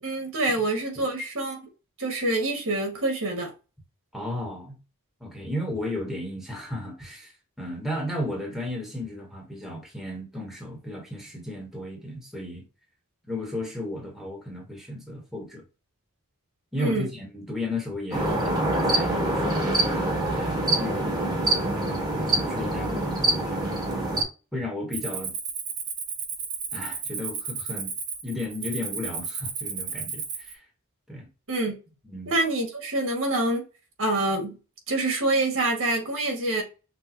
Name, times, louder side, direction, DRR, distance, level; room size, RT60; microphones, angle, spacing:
voice 1, 0.0-1.6 2.0-3.5 16.8-17.1 31.5-31.8 32.3-33.6 34.0-34.6 34.9-36.6, right 2 dB, 65° right, 1.9 m, -26 dB
voice 2, 4.1-4.8 5.2-7.3 7.6-12.6 13.3-15.6 16.7-18.6 18.8-21.4 21.8-24.1 24.5-25.3 26.7-27.9 28.2-30.6 31.1-31.3 32.1-32.3, left 1 dB, ahead, 1.3 m, -34 dB
sound 1, 18.1-24.2, right 1 dB, 20° right, 1.5 m, -25 dB
Cricket, 24.9-30.5, right 6 dB, 80° right, 1.3 m, -33 dB
6.2 x 2.3 x 3.0 m
head